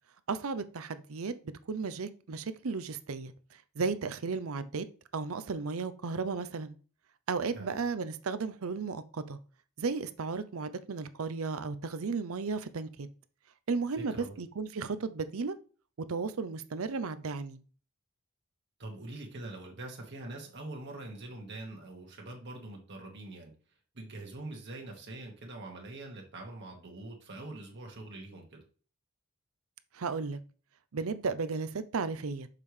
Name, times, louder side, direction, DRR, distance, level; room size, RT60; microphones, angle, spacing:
voice 1, 0.3-1.3 1.7-4.9 5.1-6.7 7.3-9.4 9.8-13.1 13.7-15.6 16.1-17.6 29.9-30.4 30.9-32.5, right 4 dB, 85° right, 0.6 m, -34 dB
voice 2, 14.0-14.4 18.8-23.5 23.9-28.6, right 2 dB, 55° right, 1.6 m, -44 dB
6.6 x 5.4 x 3.2 m
head